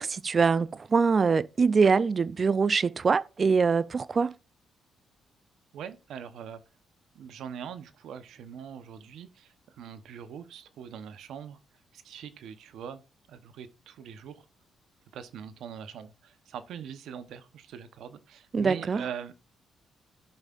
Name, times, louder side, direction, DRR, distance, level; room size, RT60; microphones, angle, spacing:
voice 1, 0.0-4.3 18.5-19.0, right 5 dB, 40° right, 0.5 m, -24 dB
voice 2, 5.7-6.6 7.1-11.6 11.9-13.0 13.3-14.4 15.1-19.3, right 8 dB, 80° right, 0.9 m, -42 dB
14.5 x 5.5 x 2.5 m
cardioid pair, 80°, 0 cm